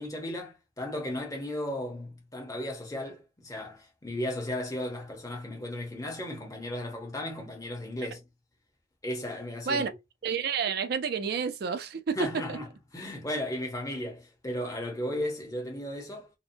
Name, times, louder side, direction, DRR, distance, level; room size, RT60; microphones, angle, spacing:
voice 1, 0.0-8.2 9.0-9.8 12.2-12.7 12.9-16.3, left 1 dB, 15° left, 0.7 m, -35 dB
voice 2, 10.2-12.6, right 6 dB, 50° right, 0.4 m, -30 dB
2.8 x 2.1 x 2.6 m
head